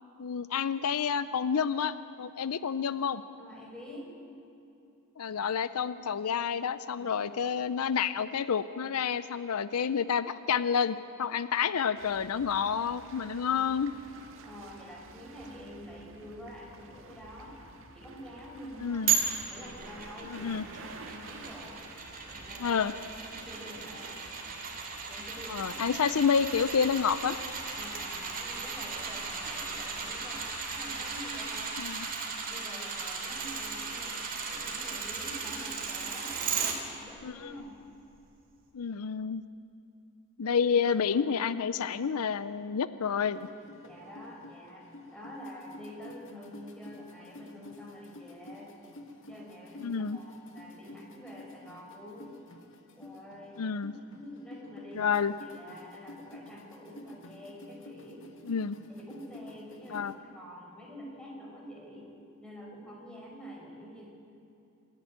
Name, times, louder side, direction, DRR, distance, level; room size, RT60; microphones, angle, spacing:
voice 1, 0.2-3.2 5.2-13.9 18.8-19.1 20.3-20.6 22.6-22.9 25.5-27.4 31.8-32.1 37.2-37.5 38.7-39.4 40.4-43.4 49.8-50.2 53.6-53.9 55.0-55.3 58.5-58.8 59.9-60.1, left 6 dB, 80° left, 14 dB, 0.5 m, -29 dB
voice 2, 3.4-4.1 7.0-7.5 13.1-14.0 14.4-17.6 17.9-19.1 19.5-21.9 22.2-22.8 23.2-24.3 25.1-26.0 27.7-30.5 30.7-34.2 34.5-37.8 43.8-48.7 49.2-52.4 53.0-53.6 54.1-55.2 55.5-58.3 58.9-62.1 62.4-64.1, equal, 5° left, -3 dB, 5.0 m, -47 dB
sound 1, 12.0-31.6, right 3 dB, 60° right, 1.7 m, -51 dB
sound 2, 19.1-36.7 37.2-37.3, right 6 dB, 40° right, 2.7 m, -36 dB
sound 3, 43.3-60.1, left 2 dB, 60° left, 1.7 m, -50 dB
25.5 x 10.5 x 10.0 m, 2.8 s
head